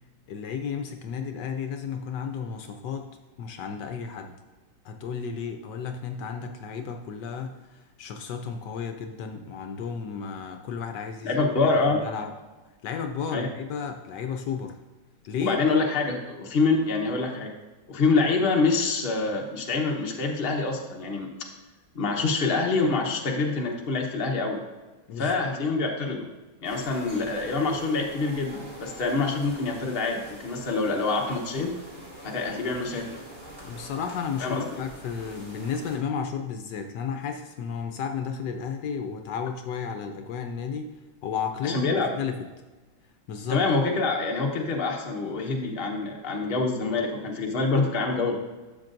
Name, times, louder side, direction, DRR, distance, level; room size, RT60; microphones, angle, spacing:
voice 1, 0.3-4.3 4.8-12.4 12.8-14.8 15.3-15.6 25.1-25.5 33.6-42.5 43.3-43.7, left 6 dB, 75° left, 5 dB, 1.3 m, -33 dB
voice 2, 11.2-12.1 13.3-13.5 15.4-17.5 17.9-21.3 21.9-24.6 25.2-26.3 26.6-31.7 32.2-33.0 34.4-34.6 41.7-42.1 43.5-48.4, left 3 dB, 35° left, 1 dB, 1.1 m, -26 dB
sound 1, 26.6-36.0, right 1 dB, 30° right, 2.0 m, -44 dB
12.0 x 7.3 x 2.6 m, 1.2 s
omnidirectional pair, 1.9 m